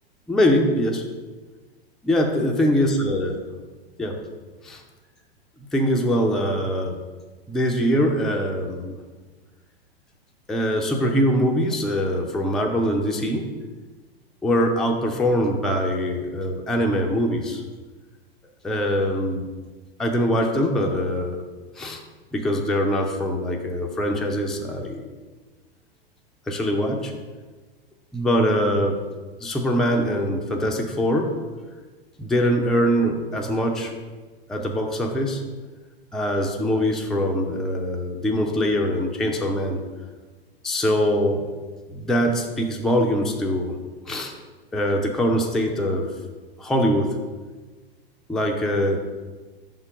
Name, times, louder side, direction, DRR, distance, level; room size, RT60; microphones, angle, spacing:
voice 1, 0.3-1.0 2.0-3.3 4.0-4.2 4.6-4.8 5.7-7.0 7.5-8.9 10.5-13.5 14.4-17.6 18.6-19.5 20.0-21.4 21.8-22.0 22.3-25.0 26.5-27.1 28.1-29.0 29.4-31.3 32.2-33.9 34.5-35.5 36.1-39.8 40.6-41.4 41.9-43.8 44.1-44.3 44.7-46.1 46.6-47.2 48.3-49.0, equal, ahead, 1 dB, 0.4 m, -23 dB
5.6 x 3.8 x 5.5 m, 1.3 s
figure-of-eight pair, 95°, 30 cm